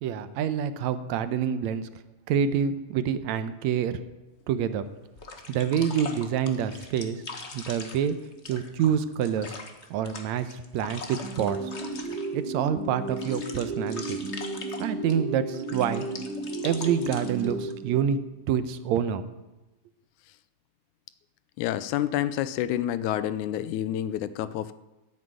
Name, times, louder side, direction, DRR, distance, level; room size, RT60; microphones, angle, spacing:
voice 1, 0.0-1.9 2.3-4.0 4.5-4.9 5.5-7.2 7.5-8.2 8.5-9.6 9.9-11.7 12.3-14.2 14.8-16.1 16.6-18.2 18.5-19.2, right 8 dB, 75° right, 12 dB, 2.0 m, -27 dB
sound 1, 4.4-4.5 5.1-12.5 12.8-15.1 15.5-17.7, left 3 dB, 50° left, 0.8 m, -42 dB
sound 2, 11.2-18.4, right 2 dB, 55° right, 2.4 m, -34 dB
voice 2, 21.6-24.8, left 12 dB, 85° left, 15 dB, 2.1 m, -28 dB
14.0 x 7.7 x 9.4 m, 1.1 s
omnidirectional pair, 3.4 m